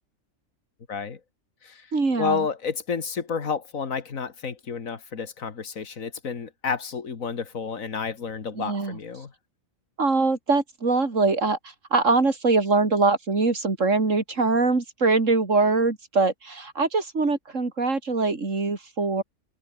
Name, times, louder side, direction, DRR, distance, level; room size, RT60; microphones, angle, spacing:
voice 1, 0.9-1.2 1.6-1.9 2.2-9.3, left 5 dB, 85° left, 2.3 m, -30 dB
voice 2, 1.9-2.5 8.6-9.0 10.0-11.6 11.9-19.2, right 3 dB, 70° right, 3.4 m, -23 dB
omnidirectional pair, 1.4 m